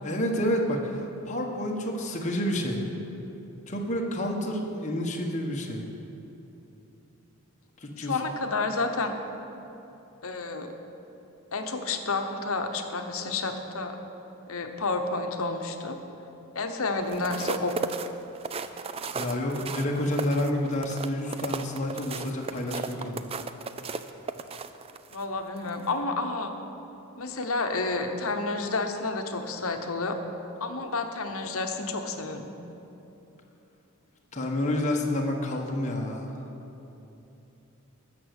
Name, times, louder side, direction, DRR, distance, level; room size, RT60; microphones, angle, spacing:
voice 1, 0.0-2.8 3.7-5.8 7.8-8.2 19.1-23.2 34.3-36.3, left 1 dB, 30° left, 0 dB, 1.3 m, -29 dB
voice 2, 8.0-9.1 10.2-10.7 11.5-14.0 14.5-16.0 16.5-17.7 25.1-26.5 27.2-30.2 30.6-32.5, left 3 dB, 70° left, 6 dB, 1.0 m, -30 dB
sound 1, 17.0-25.2 25.7-25.9, right 4 dB, 25° right, 0.3 m, -35 dB
13.5 x 6.2 x 8.1 m, 3.0 s
head